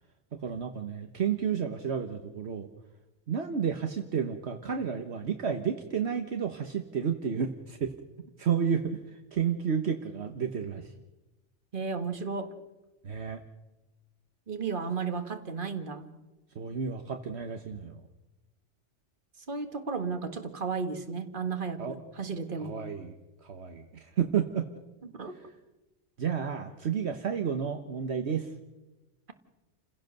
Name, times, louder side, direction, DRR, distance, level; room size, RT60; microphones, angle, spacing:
voice 1, 0.4-2.7 3.3-7.9 8.4-9.0 9.3-10.9 13.0-13.4 16.5-18.1 21.8-22.0 22.6-23.1 23.4-24.7 26.2-28.5, right 7 dB, 65° right, 5 dB, 1.4 m, -31 dB
voice 2, 11.7-12.5 14.5-16.1 19.5-22.8 25.0-25.4, right 5 dB, 45° right, 7 dB, 1.8 m, -34 dB
29.5 x 16.0 x 6.6 m, 1.1 s
omnidirectional pair, 1.2 m